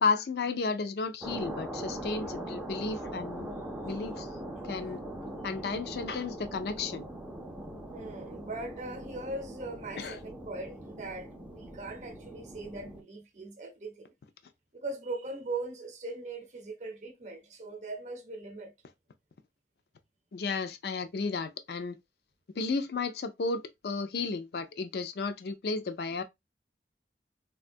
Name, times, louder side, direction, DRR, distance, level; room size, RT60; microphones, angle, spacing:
voice 1, 0.0-3.5 3.8-4.3 4.6-7.0 10.0-10.2 20.3-22.0 22.6-26.2, left 4 dB, 60° left, 0.4 m, -33 dB
sound 1, 1.2-13.0, right 1 dB, 10° right, 0.4 m, -41 dB
voice 2, 7.9-14.1 14.7-18.7, right 2 dB, 40° right, 0.7 m, -40 dB
3.6 x 2.2 x 2.5 m
head